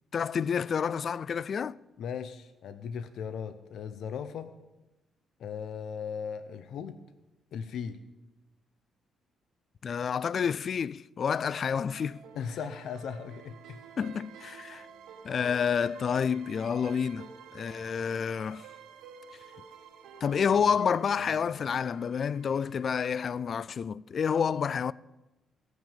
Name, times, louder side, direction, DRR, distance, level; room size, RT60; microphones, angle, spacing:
voice 1, 0.1-1.8 9.8-12.2 14.0-14.9 15.2-18.7 20.2-24.9, left 7 dB, 50° left, 0.3 m, -29 dB
voice 2, 2.0-4.5 5.4-7.0 7.5-8.0 12.4-13.8, left 7 dB, 70° left, 0.7 m, -37 dB
sound 1, 11.9-23.1, right 6 dB, 85° right, 1.6 m, -50 dB
15.5 x 6.1 x 7.3 m
cardioid pair, 90°, 0 cm